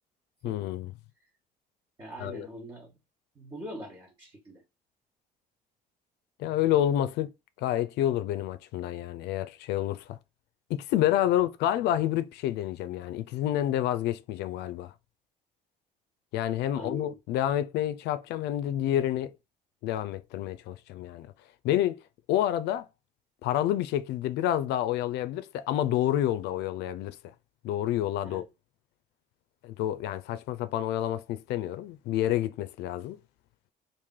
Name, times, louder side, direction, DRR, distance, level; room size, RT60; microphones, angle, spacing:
voice 1, 0.4-0.9 2.2-2.5 6.4-7.3 7.6-10.2 10.7-14.9 16.3-19.3 19.8-21.3 21.6-22.0 22.3-22.9 23.4-27.2 27.6-28.4 29.6-33.2, left 12 dB, 80° left, 0.4 m, -28 dB
voice 2, 2.0-3.0 3.3-4.6 16.7-17.1 28.2-28.4, equal, 30° right, 1.2 m, -42 dB
3.2 x 2.5 x 3.6 m
cardioid pair, 110°, 17 cm